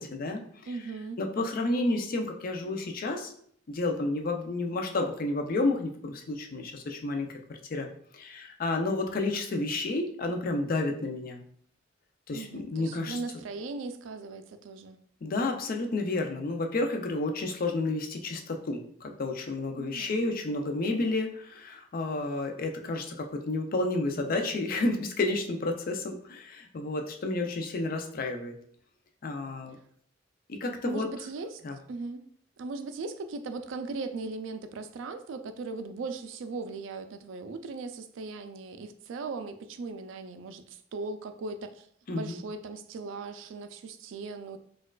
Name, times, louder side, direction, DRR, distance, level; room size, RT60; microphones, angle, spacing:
voice 1, 0.0-0.7 1.2-3.3 3.7-7.9 8.1-11.4 12.3-13.2 15.2-28.5 29.2-29.8 30.5-31.1 31.6-31.7 42.1-42.4, left 2 dB, 50° left, 4 dB, 0.4 m, -31 dB
voice 2, 0.7-1.2 12.3-15.0 19.7-20.3 30.8-31.6 31.9-32.2 32.6-44.6, right 3 dB, 85° right, 9 dB, 0.3 m, -38 dB
4.3 x 2.3 x 2.3 m, 0.62 s
head